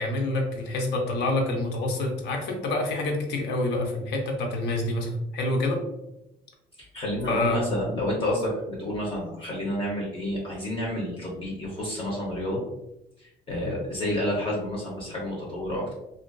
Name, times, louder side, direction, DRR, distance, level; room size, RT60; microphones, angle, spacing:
voice 1, 0.0-5.8 7.3-7.6, left 2 dB, 80° left, 2 dB, 0.7 m, -27 dB
voice 2, 6.8-12.6 13.2-15.9, left 1 dB, 30° left, -4 dB, 0.7 m, -30 dB
2.4 x 2.3 x 2.2 m, 0.87 s
cardioid pair, 110°, 17 cm